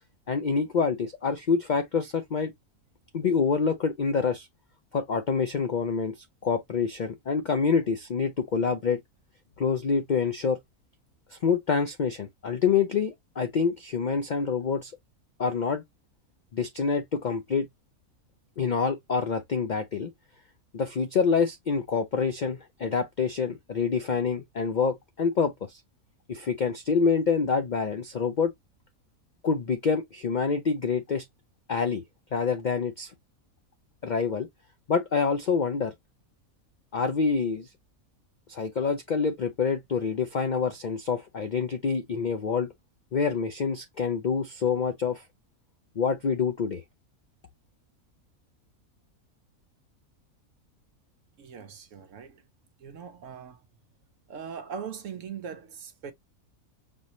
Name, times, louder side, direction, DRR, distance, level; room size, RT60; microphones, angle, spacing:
voice 1, 0.3-2.5 3.1-4.5 4.9-6.2 6.4-9.0 9.6-10.6 11.3-14.9 15.4-15.8 16.5-17.7 18.6-20.1 20.7-25.8 26.3-28.5 29.4-31.2 31.7-32.0 32.3-33.1 34.0-34.5 34.9-35.9 36.9-37.7 38.5-42.7 43.1-45.2 46.0-46.8, left 5 dB, 70° left, 0.4 m, -26 dB
voice 2, 51.4-52.4 52.8-53.6 54.3-56.1, right 7 dB, 65° right, 0.9 m, -40 dB
5.3 x 2.7 x 3.0 m
omnidirectional pair, 1.5 m